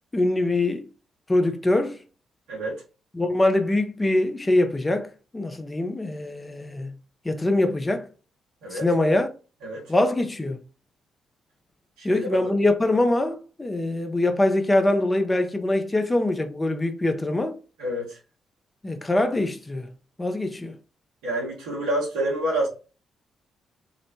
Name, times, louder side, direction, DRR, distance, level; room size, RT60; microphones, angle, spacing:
voice 1, 0.1-0.9 1.3-2.0 3.1-5.1 5.3-6.9 7.2-8.0 8.7-9.3 9.9-10.6 12.0-17.6 18.8-19.9 20.2-20.7, left 2 dB, 20° left, 0.5 m, -23 dB
voice 2, 2.5-2.8 8.6-8.9 9.6-9.9 12.0-12.5 17.8-18.2 21.2-22.7, right 1 dB, 80° right, 1.1 m, -28 dB
3.0 x 2.0 x 2.7 m
hypercardioid pair, 40°, 0 cm